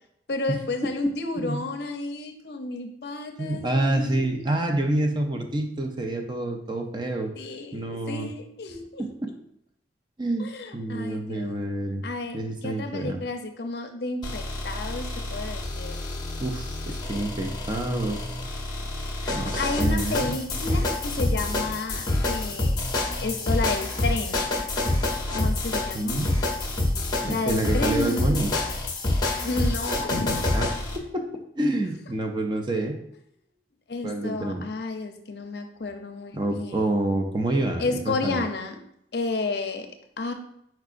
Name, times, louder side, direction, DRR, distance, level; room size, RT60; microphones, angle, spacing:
voice 1, 0.3-4.5 7.4-9.1 10.4-11.6 12.0-12.4 12.6-16.0 19.2-22.8 23.2-24.5 25.3-26.2 27.2-28.4 29.4-30.5 33.9-37.0 37.8-38.8 39.1-39.9 40.2-40.3, left 3 dB, 60° left, 6 dB, 0.6 m, -31 dB
voice 2, 3.4-7.3 7.7-8.3 9.0-9.1 10.2-10.5 10.7-12.0 12.3-13.2 16.4-18.2 19.3-20.3 25.9-26.3 27.2-28.5 30.5-31.3 31.6-33.0 34.0-34.6 36.3-38.4, right 1 dB, 25° right, 4 dB, 0.5 m, -28 dB
sound 1, 14.2-31.0, left 2 dB, 25° left, 0.7 m, -27 dB
4.8 x 4.5 x 2.5 m, 0.75 s
head